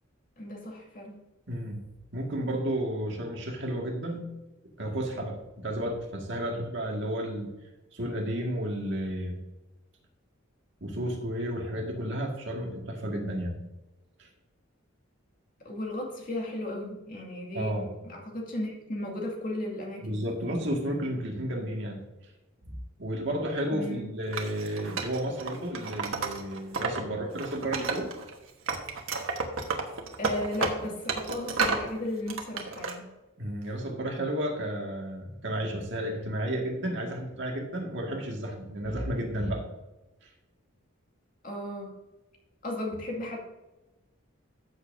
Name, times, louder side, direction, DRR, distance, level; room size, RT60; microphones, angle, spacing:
voice 1, 0.4-1.2 15.6-20.2 23.7-24.1 30.2-33.1 41.4-42.0 42.6-43.4, left 1 dB, 45° left, -1 dB, 2.3 m, -35 dB
voice 2, 1.5-1.8 2.1-4.3 4.8-7.5 7.9-9.4 10.8-13.6 14.2-14.3 17.5-17.9 20.0-22.0 22.6-22.7 23.0-28.1 33.4-39.6 40.2-40.3, right 1 dB, 60° right, 0 dB, 2.0 m, -32 dB
Wood, 24.3-27.0 27.3-28.3 28.7-31.9 32.3-32.9, right 4 dB, 90° right, 1.4 m, -31 dB
14.0 x 7.4 x 2.7 m, 1.0 s
head